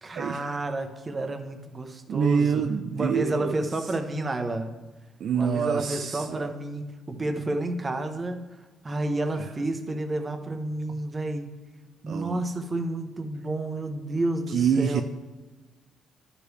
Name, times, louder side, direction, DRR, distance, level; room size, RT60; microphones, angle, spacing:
voice 1, 0.0-2.6 2.9-4.7 5.3-8.5 8.8-11.5 12.0-15.0, right 2 dB, 30° right, 6 dB, 0.9 m, -30 dB
voice 2, 2.1-3.6 5.2-6.4 9.4-9.5 12.1-12.4 14.5-15.0, right 7 dB, 65° right, 6 dB, 0.4 m, -26 dB
11.0 x 4.9 x 3.3 m, 1.2 s
cardioid pair, 90°, 0 cm